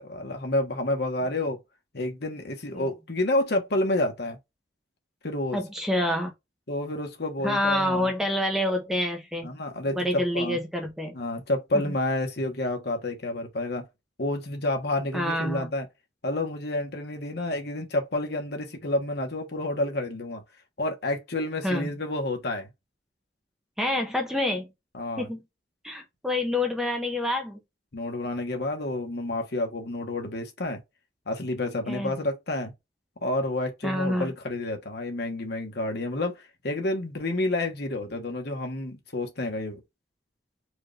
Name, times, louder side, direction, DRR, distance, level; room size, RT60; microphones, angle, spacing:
voice 1, 0.0-1.6 1.9-4.4 5.2-5.6 6.7-8.1 9.4-10.6 11.1-13.8 14.2-15.9 16.2-20.4 20.8-22.7 24.9-25.3 27.9-30.8 31.3-32.7 33.2-39.8, left 1 dB, 60° left, 1.2 m, -29 dB
voice 2, 5.5-6.3 7.4-9.5 9.9-11.1 11.7-11.9 15.1-15.7 21.6-22.0 23.8-24.7 25.2-25.4 25.8-27.6 31.9-32.1 33.8-34.3, left 1 dB, 5° right, 0.9 m, -27 dB
4.7 x 2.5 x 3.3 m
head